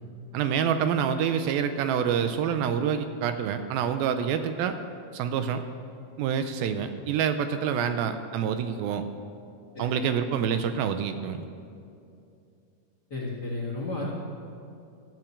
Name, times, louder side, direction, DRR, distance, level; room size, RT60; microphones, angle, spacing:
voice 1, 0.3-4.8 5.1-5.6 6.2-9.0 9.8-11.4, right 7 dB, 80° right, 9 dB, 2.4 m, -27 dB
voice 2, 13.1-14.1, left 2 dB, 45° left, -5 dB, 1.4 m, -33 dB
12.5 x 7.6 x 8.5 m, 2.5 s
omnidirectional pair, 4.4 m